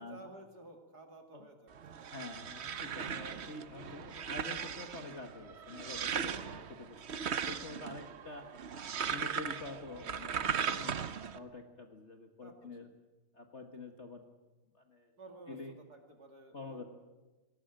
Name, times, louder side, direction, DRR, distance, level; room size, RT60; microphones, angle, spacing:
voice 1, 0.0-2.1 8.4-8.7 12.4-12.9 15.2-16.8, right 2 dB, 45° right, 4 dB, 2.8 m, -54 dB
sound 1, 1.7-11.4, right 7 dB, 90° right, 0.5 m, -38 dB
voice 2, 2.1-8.4 9.0-12.9 13.3-14.2 14.7-15.1 15.5-15.7 16.5-16.8, left 3 dB, 35° left, 5 dB, 1.5 m, -47 dB
19.5 x 18.5 x 9.0 m, 1.2 s
omnidirectional pair, 2.4 m